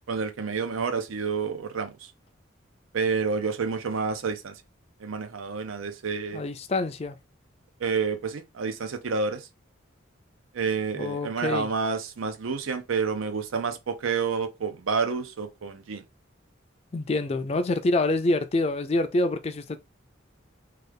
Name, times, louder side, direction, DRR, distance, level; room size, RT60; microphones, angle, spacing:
voice 1, 0.1-1.9 2.9-4.5 5.0-6.4 7.8-9.5 10.5-16.0, right 5 dB, 90° right, 0.6 m, -29 dB
voice 2, 6.3-7.2 10.9-11.7 16.9-19.8, left 2 dB, 30° left, 0.3 m, -26 dB
3.2 x 2.3 x 3.3 m
head